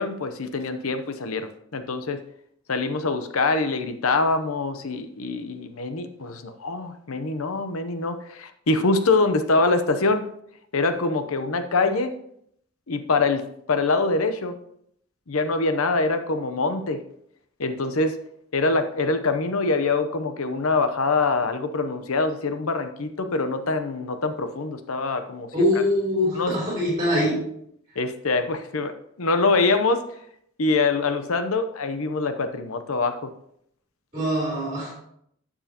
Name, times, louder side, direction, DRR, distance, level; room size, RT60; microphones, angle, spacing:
voice 1, 0.0-2.2 2.7-10.3 10.7-12.1 12.9-14.6 15.3-17.0 17.6-18.2 18.5-25.5 26.3-26.6 28.0-28.9 29.2-30.0 30.6-33.3, left 3 dB, 80° left, 9 dB, 0.8 m, -24 dB
voice 2, 25.5-27.4 34.1-34.9, left 1 dB, 25° right, -6 dB, 3.9 m, -23 dB
12.0 x 7.2 x 2.9 m, 0.70 s
head